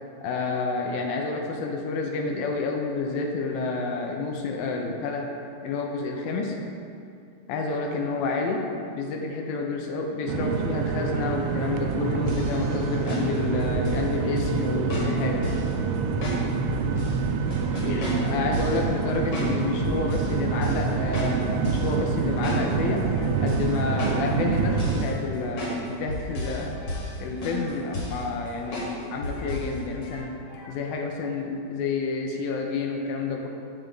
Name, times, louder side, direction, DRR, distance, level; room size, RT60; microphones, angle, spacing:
voice 1, 0.2-5.3 5.6-6.6 7.5-15.5 17.8-23.1 23.4-26.8 27.2-30.4 30.7-33.5, left 3 dB, 90° left, 2 dB, 2.4 m, -29 dB
sound 1, 10.3-25.1, right 5 dB, 80° right, 1.8 m, -27 dB
sound 2, 12.3-14.1 14.4-14.6 14.9-15.7 16.2-17.2 17.5-18.8 19.3-19.5 19.8-20.3 20.6-20.9 21.1-21.9 22.2-23.0 23.5-24.3 24.5-25.1 25.6-25.8 26.1-26.6 26.9-27.2 27.4-28.2 28.7-28.9 29.2-29.7 30.0-30.1, left 2 dB, 50° left, 2.2 m, -32 dB
sound 3, 23.1-23.4 23.8-24.1 24.9-25.3 25.5-25.9 26.2-27.7 28.5-29.7 29.9-30.9, left 2 dB, 70° left, 2.3 m, -48 dB
7.7 x 7.1 x 3.8 m, 2.5 s
omnidirectional pair, 4.0 m